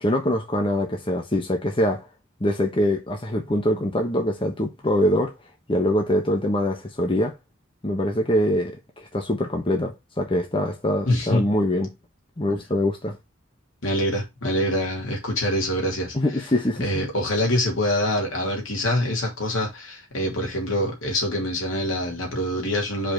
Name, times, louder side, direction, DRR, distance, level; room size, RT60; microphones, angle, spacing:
voice 1, 0.0-2.1 2.4-5.3 5.7-7.4 7.8-11.9 12.4-13.2 16.1-17.1, left 1 dB, 25° left, 1.1 m, -24 dB
voice 2, 11.0-11.5 13.8-16.1 16.8-23.1, left 1 dB, 75° left, 2.9 m, -25 dB
5.1 x 4.3 x 5.2 m
head